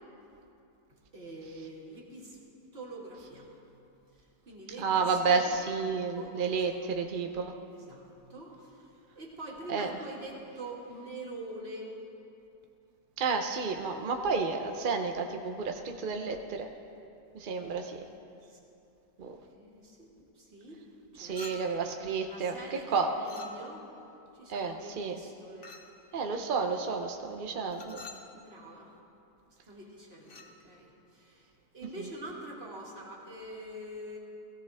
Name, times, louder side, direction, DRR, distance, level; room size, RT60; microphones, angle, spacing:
voice 1, 1.1-2.4 2.7-3.5 4.1-5.5 5.8-6.9 7.7-8.9 9.2-12.0 18.5-18.6 19.5-20.8 21.1-21.7 22.3-23.9 24.3-25.8 28.3-29.0 29.6-34.2, right 1 dB, 35° right, -3 dB, 2.2 m, -45 dB
voice 2, 4.8-7.5 9.7-9.9 13.2-16.7 17.3-18.0 19.2-19.4 21.2-23.1 24.5-25.2 26.1-28.1, right 4 dB, 65° right, 4 dB, 0.5 m, -31 dB
Chink clink, 21.3-21.9 23.2-23.9 25.6-26.0 27.7-28.3 30.2-30.6, left 4 dB, 40° left, 0.9 m, -47 dB
17.0 x 16.0 x 3.5 m, 2.8 s
omnidirectional pair, 1.8 m